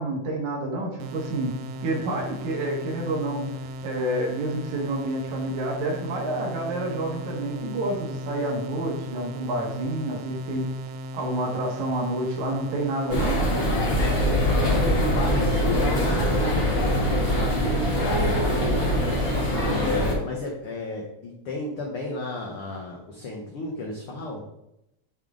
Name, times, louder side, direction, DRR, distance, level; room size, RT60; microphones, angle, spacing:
voice 1, 0.0-3.4 3.8-10.7 11.1-13.4 19.6-20.0, right 1 dB, 65° right, 0 dB, 2.4 m, -29 dB
sound 1, 1.0-20.1, equal, 85° right, 1.5 m, -37 dB
sound 2, 13.1-20.1, equal, 50° left, 0.7 m, -23 dB
voice 2, 14.5-18.9 19.6-24.4, left 2 dB, 80° left, 0 dB, 1.2 m, -33 dB
8.7 x 3.5 x 3.7 m, 0.82 s
omnidirectional pair, 3.7 m